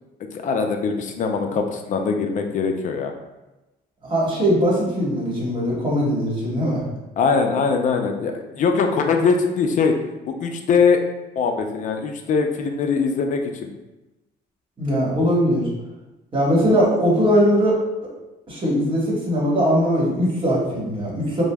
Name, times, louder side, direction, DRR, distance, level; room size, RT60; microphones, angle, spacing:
voice 1, 0.3-3.1 7.2-10.0 10.3-11.0 11.4-13.7, left 5 dB, 50° left, 4 dB, 0.4 m, -21 dB
voice 2, 4.0-6.8 14.8-15.7 16.3-17.7 18.0-18.1 18.5-21.4, equal, 30° right, -5 dB, 1.3 m, -20 dB
4.8 x 2.0 x 2.2 m, 1.0 s
cardioid pair, 110°, 17 cm